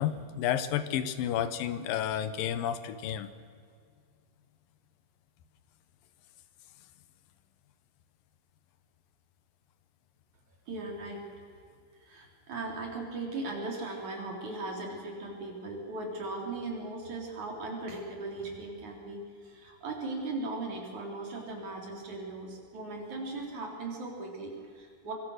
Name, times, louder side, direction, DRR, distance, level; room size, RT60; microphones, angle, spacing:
voice 1, 0.0-3.3, left 10 dB, 85° left, 12 dB, 2.8 m, -31 dB
voice 2, 10.7-11.4 12.0-25.1, right 2 dB, 60° right, 0 dB, 5.1 m, -38 dB
24.5 x 24.5 x 6.5 m, 2.2 s
omnidirectional pair, 3.9 m